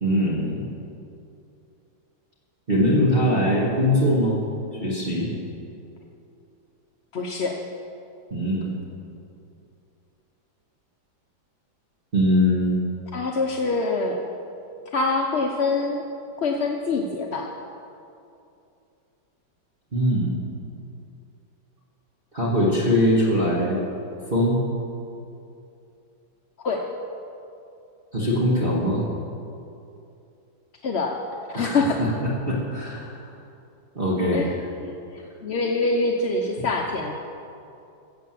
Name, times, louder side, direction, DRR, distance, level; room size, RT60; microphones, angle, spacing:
voice 1, 0.0-0.7 2.7-4.4 4.8-5.3 8.3-8.7 12.1-12.8 19.9-20.5 22.3-23.8 24.3-24.6 28.1-29.0 31.5-33.1 34.0-34.5, equal, 30° right, -5 dB, 2.1 m, -22 dB
voice 2, 7.1-7.6 13.1-14.2 14.9-16.0 16.4-17.5 26.6-26.8 30.8-31.2 31.5-32.0 34.3-34.5 34.8-37.1, left 3 dB, 50° left, 1 dB, 0.8 m, -25 dB
15.0 x 8.1 x 7.7 m, 2.7 s
omnidirectional pair, 2.1 m